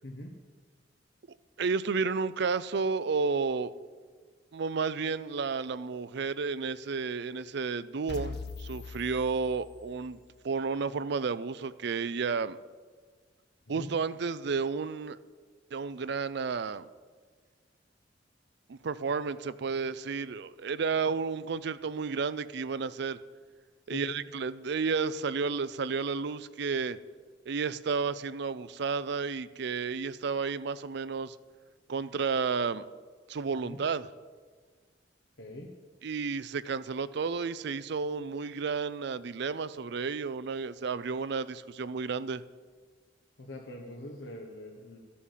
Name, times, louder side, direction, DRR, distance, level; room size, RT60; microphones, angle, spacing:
voice 1, 0.0-0.3 13.7-13.9 23.9-24.2 33.6-33.8 35.4-35.7 43.4-45.0, left 1 dB, 80° left, 1 dB, 1.3 m, -43 dB
voice 2, 1.6-3.7 4.5-10.2 10.4-12.6 13.7-15.2 15.7-16.9 18.7-23.2 23.9-27.0 27.5-31.4 31.9-32.9 33.3-34.1 36.0-42.4, right 5 dB, 65° right, 15 dB, 0.5 m, -32 dB
sound 1, 8.1-10.1, left 4 dB, 65° left, 1.4 m, -41 dB
13.5 x 8.6 x 7.4 m, 1.5 s
head